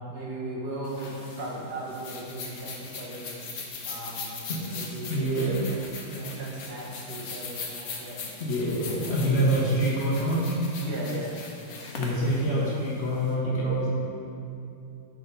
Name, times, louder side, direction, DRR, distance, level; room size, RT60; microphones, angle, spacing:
voice 1, 0.0-3.3 3.9-4.4 4.7-5.3 5.6-8.2 8.9-9.1 10.8-11.4 12.4-12.8, right 1 dB, 70° right, -4 dB, 1.7 m, -37 dB
sound 1, 0.8-13.3, left 4 dB, 60° left, 1.2 m, -40 dB
voice 2, 5.1-5.6 8.4-10.4 11.9-13.9, right 1 dB, 45° left, -6 dB, 1.2 m, -25 dB
6.3 x 4.4 x 5.4 m, 2.7 s
omnidirectional pair, 1.8 m